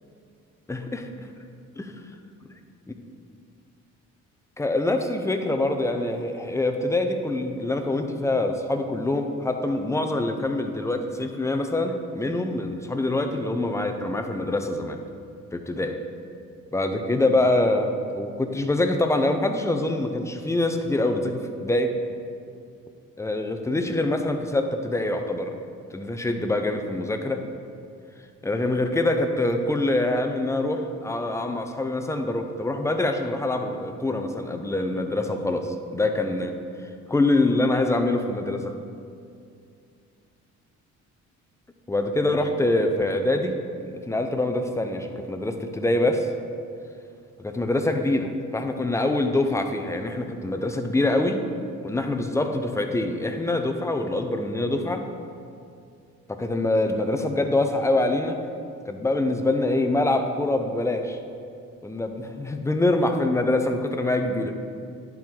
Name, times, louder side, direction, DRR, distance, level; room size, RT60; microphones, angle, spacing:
voice 1, 0.7-1.1 1.8-1.9 4.6-15.0 15.5-16.0 16.7-21.9 23.2-25.5 25.9-27.4 28.4-36.6 37.1-38.7 41.9-43.6 43.8-46.3 47.4-51.4 51.8-55.1 56.3-58.4 58.9-61.2 61.8-64.5, left 2 dB, 10° left, 5 dB, 0.6 m, -25 dB
10.5 x 4.6 x 3.8 m, 2.4 s
cardioid pair, 90°, 30 cm